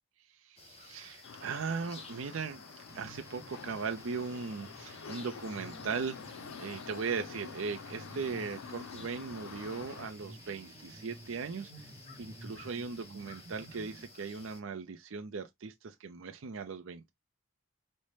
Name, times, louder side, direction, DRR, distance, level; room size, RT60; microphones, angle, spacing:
voice 1, 0.4-2.6 2.9-11.9 12.2-17.1, right 5 dB, 65° right, 0.5 m, -38 dB
sound 1, 0.6-14.6, left 3 dB, 30° left, 0.7 m, -54 dB
sound 2, 1.2-10.1, left 6 dB, 65° left, 0.4 m, -48 dB
sound 3, 2.9-14.0, right 2 dB, 15° right, 0.7 m, -53 dB
5.3 x 2.1 x 3.1 m
head